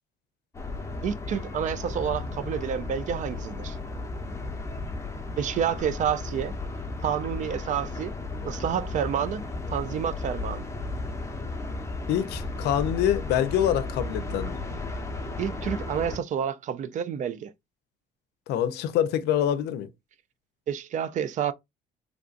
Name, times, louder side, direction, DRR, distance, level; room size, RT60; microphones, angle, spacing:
sound 1, 0.5-16.2, left 2 dB, 15° left, 0.8 m, -34 dB
voice 1, 1.0-3.8 5.4-6.6 7.0-8.1 8.4-9.5 9.7-10.7 15.4-17.5 20.7-21.5, right 8 dB, 45° right, 0.4 m, -29 dB
voice 2, 12.1-14.6 18.5-19.9, left 10 dB, 80° left, 0.5 m, -25 dB
3.5 x 2.5 x 2.4 m
cardioid pair, 110°, 17 cm